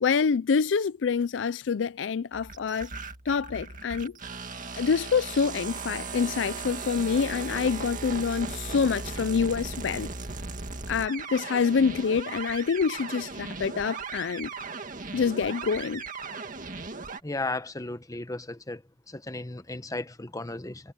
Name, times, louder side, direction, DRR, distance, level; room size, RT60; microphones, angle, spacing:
voice 1, 0.0-2.9 3.3-4.1 4.8-10.1 10.9-14.5 15.1-16.0, left 5 dB, 70° left, 0.4 m, -26 dB
sound 1, 2.3-17.2, right 4 dB, 45° right, 2.0 m, -37 dB
voice 2, 17.2-18.8 19.1-20.9, left 2 dB, 20° left, 1.0 m, -35 dB
head